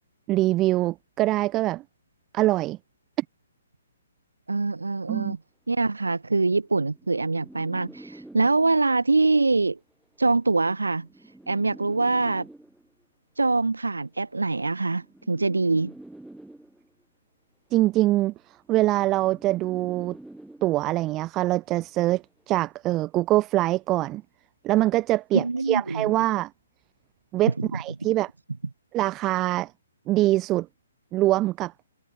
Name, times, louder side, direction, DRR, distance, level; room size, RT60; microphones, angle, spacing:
voice 1, 0.3-1.8 2.3-2.8 5.1-5.4 17.7-18.3 18.7-20.2 20.6-24.2 24.6-26.5 27.3-28.3 28.9-29.7 30.1-30.7 31.1-31.7, right 16 dB, 20° right, 1.0 m, -24 dB
voice 2, 4.5-5.4 5.7-9.8 10.2-11.1 11.5-12.5 13.4-15.9 25.3-26.1 27.5-27.6, right 3 dB, 75° right, 1.1 m, -24 dB
sound 1, 6.6-9.0 10.0-13.0 14.0-17.0 18.0-21.0 22.0-22.4, right 1 dB, 5° right, 4.6 m, -47 dB
figure-of-eight pair, 130°, 0 cm